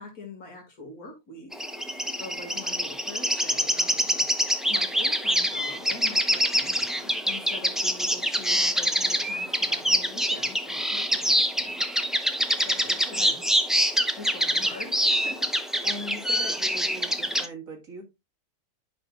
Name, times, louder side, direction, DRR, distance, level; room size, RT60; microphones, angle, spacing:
voice 1, 0.0-1.5 2.2-4.3 4.7-11.8 12.1-13.4 14.1-15.5, left 2 dB, 75° left, 2.6 m, -44 dB
sound 1, 1.5-17.5, equal, ahead, 0.4 m, -25 dB
voice 2, 13.0-13.4 15.8-18.0, right 1 dB, 60° right, 2.4 m, -40 dB
12.0 x 5.3 x 2.4 m
omnidirectional pair, 1.6 m